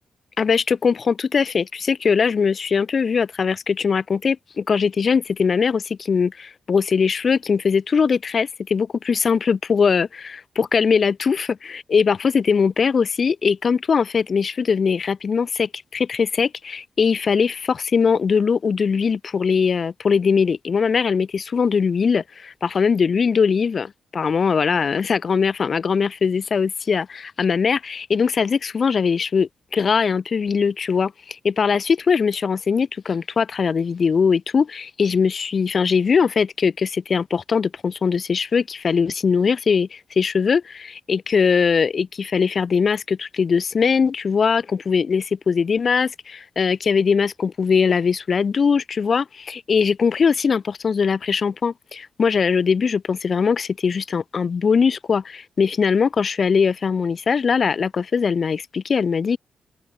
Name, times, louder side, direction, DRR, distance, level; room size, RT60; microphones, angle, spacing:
voice 1, 0.4-59.4, left 6 dB, 45° left, 0.8 m, -21 dB
open air
cardioid pair, 120°, 0 cm